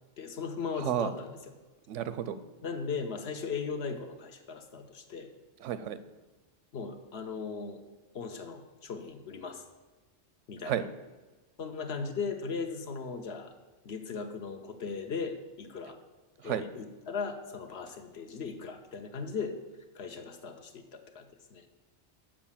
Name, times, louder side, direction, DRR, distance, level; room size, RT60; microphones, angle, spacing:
voice 1, 0.2-1.4 2.6-5.3 6.7-7.8 8.1-9.6 10.5-10.8 11.6-13.5 13.8-16.0 16.4-19.6 19.9-21.3 21.5-21.7, left 5 dB, 65° left, 6 dB, 1.0 m, -38 dB
voice 2, 0.8-1.1 1.9-2.4 5.6-6.0 10.6-10.8 16.4-16.6, right 10 dB, 80° right, 13 dB, 0.9 m, -31 dB
7.6 x 5.0 x 7.2 m, 1.2 s
omnidirectional pair, 1.2 m